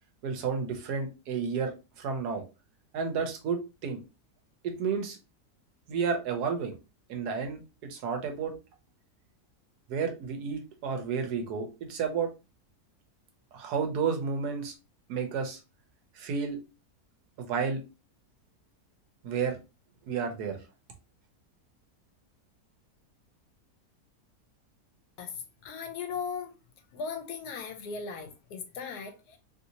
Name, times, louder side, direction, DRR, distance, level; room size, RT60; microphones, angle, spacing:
voice 1, 0.2-2.4 2.9-4.0 4.6-5.2 5.9-6.7 7.1-8.6 9.9-12.3 13.5-14.7 15.1-15.6 16.1-16.6 17.4-17.8 19.2-19.6 20.0-20.6, right 6 dB, 80° right, 1.3 m, -31 dB
voice 2, 25.6-26.5 26.9-29.4, left 5 dB, 80° left, 1.2 m, -37 dB
3.1 x 2.6 x 2.8 m
omnidirectional pair, 1.7 m